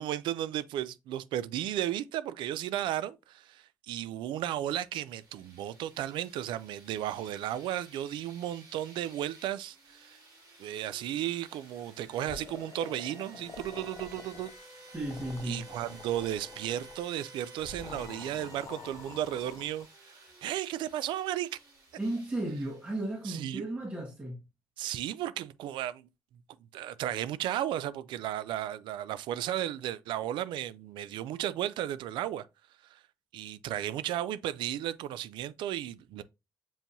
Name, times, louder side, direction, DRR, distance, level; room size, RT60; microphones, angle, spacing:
voice 1, 0.0-10.2 10.6-14.5 15.4-20.1 20.4-21.5 23.3-23.7 24.8-26.1 26.7-32.5 32.8-33.0 33.3-36.2, right 12 dB, 75° right, 0.4 m, -34 dB
sound 1, 4.7-23.4, right 2 dB, 55° right, 2.9 m, -54 dB
sound 2, 12.3-14.6 14.9-17.0 17.6-19.9, left 6 dB, 40° left, 0.5 m, -47 dB
voice 2, 14.9-15.6 22.0-24.4, right 1 dB, 20° right, 1.2 m, -34 dB
7.2 x 2.7 x 2.6 m
supercardioid pair, 80°, 8 cm